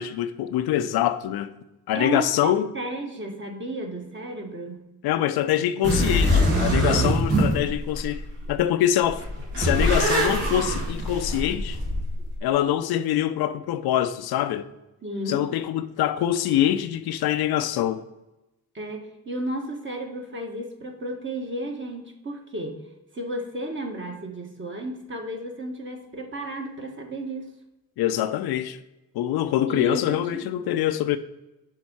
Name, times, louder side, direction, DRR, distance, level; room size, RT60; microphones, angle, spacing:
voice 1, 0.0-1.5 1.9-2.7 5.0-8.2 8.5-9.2 9.6-11.8 12.4-14.7 15.3-18.0 28.0-28.8 29.1-31.2, left 11 dB, 70° left, 0.6 m, -24 dB
voice 2, 1.9-4.8 15.0-15.4 18.7-22.8 23.1-27.5 29.7-30.5, right 1 dB, 30° right, 1.5 m, -33 dB
sound 1, 5.8-8.6 9.0-12.4, equal, 75° right, 2.6 m, -23 dB
6.5 x 3.7 x 5.5 m
supercardioid pair, 65°, 38 cm